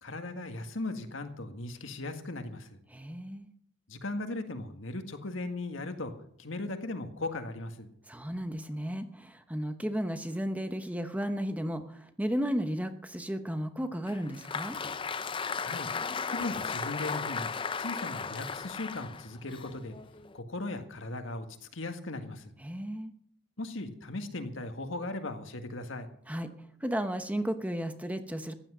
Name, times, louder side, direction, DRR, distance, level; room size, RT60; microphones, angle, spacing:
voice 1, 0.0-2.8 3.9-6.1 6.4-7.9 15.6-15.9 16.3-17.5 17.8-19.9 20.3-22.5 23.6-26.1, left 2 dB, 75° left, 6 dB, 1.8 m, -38 dB
voice 2, 2.9-3.5 8.1-14.8 22.6-23.1 26.3-26.5 26.8-28.5, equal, 5° right, 8 dB, 0.9 m, -34 dB
Applause, 14.1-20.4, left 5 dB, 25° left, 0.5 m, -36 dB
15.0 x 11.0 x 6.2 m, 0.65 s
head